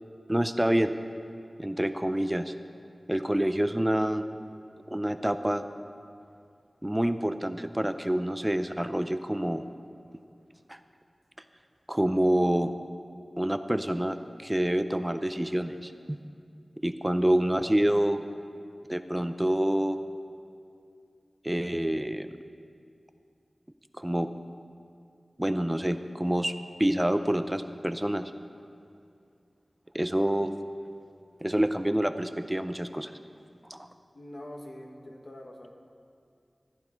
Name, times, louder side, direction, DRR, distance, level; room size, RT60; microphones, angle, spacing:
voice 1, 0.3-0.9 1.6-2.5 3.1-4.2 4.9-5.6 6.8-9.6 10.7-10.8 11.9-12.7 13.4-16.2 16.8-18.2 18.9-20.0 21.4-22.3 24.0-24.3 25.4-26.5 26.8-28.3 29.9-30.5 31.4-33.1 33.7-33.9, right 1 dB, 15° right, 9 dB, 0.4 m, -27 dB
voice 2, 34.1-35.7, left 1 dB, 70° left, 1 dB, 1.4 m, -44 dB
15.0 x 9.7 x 4.4 m, 2.4 s
wide cardioid pair, 55°, 0 cm